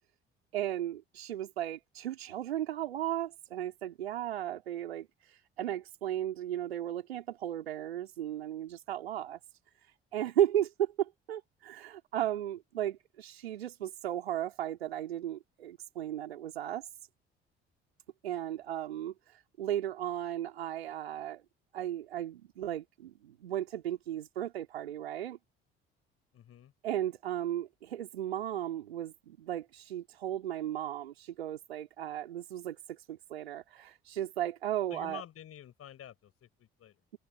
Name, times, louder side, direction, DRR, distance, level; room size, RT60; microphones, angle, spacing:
voice 1, 0.5-9.4 10.1-16.9 18.2-21.4 21.7-25.4 26.8-35.2, right 12 dB, 80° right, 3.9 m, -35 dB
voice 2, 26.3-26.7 34.9-36.9, left 10 dB, 50° left, 6.2 m, -49 dB
figure-of-eight pair, 50°, 30 cm